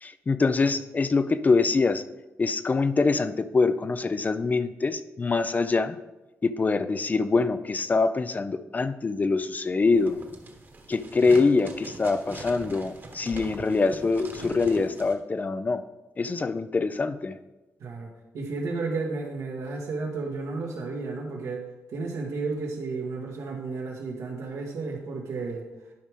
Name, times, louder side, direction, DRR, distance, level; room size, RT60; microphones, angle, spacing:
voice 1, 0.0-2.0 2.4-6.0 6.4-10.2 10.9-15.8 16.2-17.4, left 4 dB, 30° left, 12 dB, 0.4 m, -24 dB
sound 1, 9.9-15.1, right 2 dB, 40° right, 1.3 m, -42 dB
voice 2, 17.8-25.7, right 3 dB, 85° right, 0 dB, 1.6 m, -33 dB
11.5 x 4.9 x 3.6 m, 1.0 s
cardioid pair, 90°, 5 cm